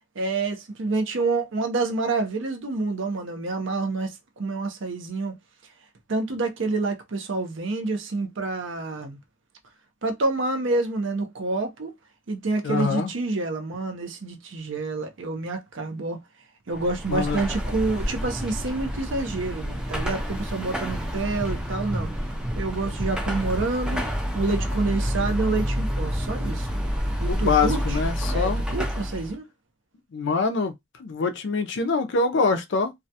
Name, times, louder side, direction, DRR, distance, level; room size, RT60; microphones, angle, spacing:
voice 1, 0.2-5.4 6.1-9.2 10.0-11.9 12.3-16.2 16.7-22.1 22.6-24.0 24.3-26.9 27.2-28.0 28.3-29.4, right 3 dB, 65° right, 0.6 m, -28 dB
voice 2, 12.6-13.1 17.1-17.4 27.3-28.6 30.1-30.7 31.0-32.9, left 4 dB, 65° left, 0.4 m, -24 dB
Car passing by / Traffic noise roadway noise / Engine, 16.7-29.3, equal, 5° right, 0.5 m, -28 dB
2.3 x 2.2 x 2.7 m
head